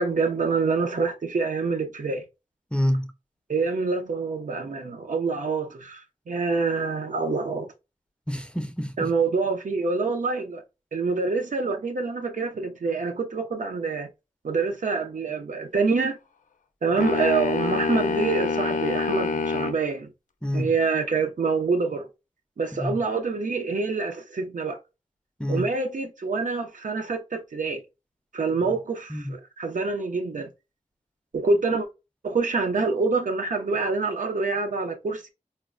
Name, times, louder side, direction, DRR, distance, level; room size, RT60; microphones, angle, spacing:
voice 1, 0.0-2.2 3.5-7.7 9.0-10.6 10.9-14.1 14.4-16.2 16.8-20.1 20.5-22.1 22.6-24.8 25.5-27.8 28.3-30.5 31.3-31.9 32.2-35.3, right 4 dB, 80° right, 0.6 m, -26 dB
voice 2, 2.7-3.1 8.3-9.1 20.4-20.7 22.8-23.0 25.4-25.7 29.1-29.3, equal, 10° left, 0.4 m, -27 dB
sound 1, 17.0-19.8, left 4 dB, 80° left, 0.4 m, -26 dB
4.2 x 2.1 x 2.5 m
wide cardioid pair, 85°, 13 cm